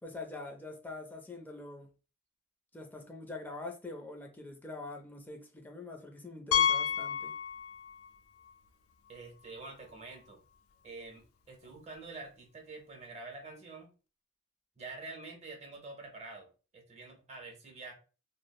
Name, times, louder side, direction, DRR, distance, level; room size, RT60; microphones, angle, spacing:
voice 1, 0.0-1.9 2.7-7.3, left 2 dB, 10° left, 0.4 m, -44 dB
Piano, 6.5-8.1 8.4-8.5 9.1-9.2 9.5-9.6 11.6-11.7, left 8 dB, 85° left, 0.3 m, -30 dB
voice 2, 9.1-10.4 10.8-13.9 14.8-17.9, right 3 dB, 35° right, 0.9 m, -47 dB
3.3 x 2.1 x 2.3 m
head